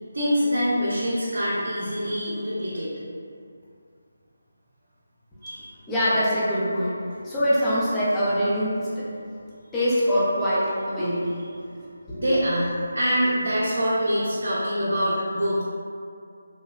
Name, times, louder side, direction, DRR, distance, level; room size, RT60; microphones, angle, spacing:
voice 1, 0.1-2.9 5.4-5.7 12.1-15.6, equal, 70° right, -9 dB, 0.6 m, -25 dB
voice 2, 5.9-7.0 7.2-9.1 9.7-11.3 12.1-12.2, equal, 10° left, -10 dB, 0.5 m, -23 dB
3.1 x 2.0 x 2.3 m, 2.4 s
figure-of-eight pair, 160°, 0 cm